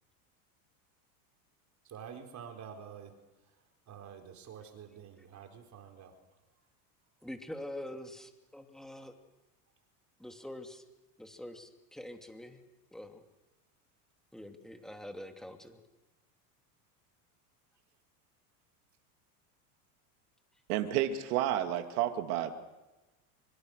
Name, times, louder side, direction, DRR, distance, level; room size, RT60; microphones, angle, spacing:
voice 1, 1.8-3.1 3.9-6.2, right 7 dB, 40° right, 4 dB, 4.3 m, -48 dB
voice 2, 7.2-9.1 10.2-10.8 11.2-12.6 12.9-13.2 14.3-15.8, left 1 dB, ahead, 5 dB, 2.9 m, -45 dB
voice 3, 20.7-22.5, right 12 dB, 70° right, 7 dB, 2.3 m, -30 dB
25.0 x 25.0 x 6.5 m, 1.1 s
supercardioid pair, 110°, 45 cm